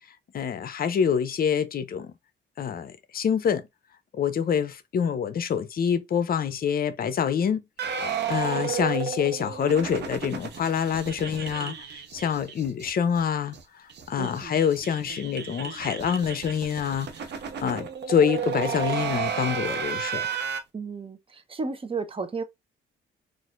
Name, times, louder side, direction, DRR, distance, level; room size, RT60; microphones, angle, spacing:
voice 1, 0.3-2.1 2.6-3.6 4.1-7.6 8.0-13.5 14.1-17.1 17.6-20.3, left 7 dB, 50° left, 0.6 m, -26 dB
sound 1, 7.8-12.9 13.1-13.2 13.5-13.6 13.9-20.6, right 7 dB, 60° right, 0.8 m, -32 dB
voice 2, 14.2-14.6 20.7-22.4, right 4 dB, 25° right, 0.7 m, -33 dB
4.0 x 2.5 x 2.4 m
cardioid pair, 90°, 20 cm